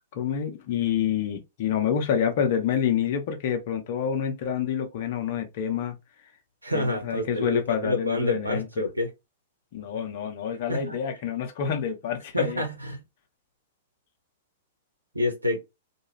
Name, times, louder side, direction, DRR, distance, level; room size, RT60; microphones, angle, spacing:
voice 1, 0.1-6.0 6.7-8.8 9.7-12.7, left 8 dB, 50° left, 0.7 m, -28 dB
voice 2, 6.6-9.1 10.7-11.0 12.3-13.0 15.1-15.6, left 2 dB, 90° right, 0.8 m, -28 dB
2.4 x 2.3 x 3.1 m
figure-of-eight pair, 105°, 0 cm